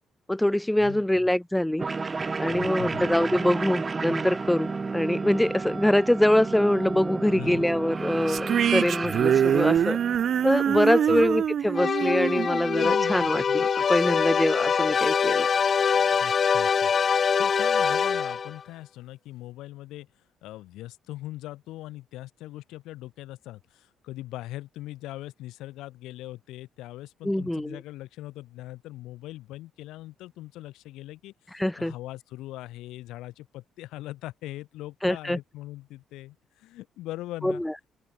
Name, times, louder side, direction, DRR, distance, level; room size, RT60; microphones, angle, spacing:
voice 1, 0.3-1.8 2.4-10.0 10.4-15.5 27.2-27.8 31.5-31.9 35.0-35.4 37.4-37.7, left 1 dB, 5° left, 0.5 m, -24 dB
sound 1, 1.8-10.8, right 4 dB, 25° right, 1.4 m, -32 dB
voice 2, 2.5-3.1 7.3-7.6 10.7-10.8 11.1-11.4 15.9-20.1 20.4-37.6, left 16 dB, 90° left, 7.3 m, -41 dB
car driving away, 8.3-13.6, right 9 dB, 55° right, 0.9 m, -25 dB
sound 2, 11.8-18.6, left 6 dB, 45° left, 0.8 m, -24 dB
open air
cardioid pair, 95°, 0 cm